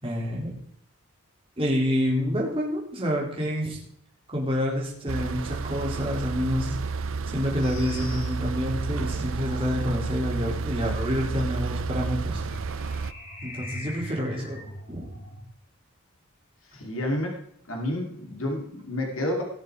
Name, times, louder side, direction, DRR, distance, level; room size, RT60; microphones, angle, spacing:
voice 1, 0.0-0.5 1.6-3.8 4.3-6.8 7.3-12.4 13.4-14.6 14.9-15.0, equal, 25° right, -3 dB, 4.0 m, -28 dB
sound 1, 5.1-13.1, right 4 dB, 60° right, 0.6 m, -31 dB
sound 2, 7.6-15.4, left 1 dB, 40° left, 3.1 m, -41 dB
voice 2, 16.7-17.4 17.7-19.4, left 1 dB, 65° left, 1 dB, 2.8 m, -30 dB
19.5 x 7.0 x 4.8 m, 0.70 s
head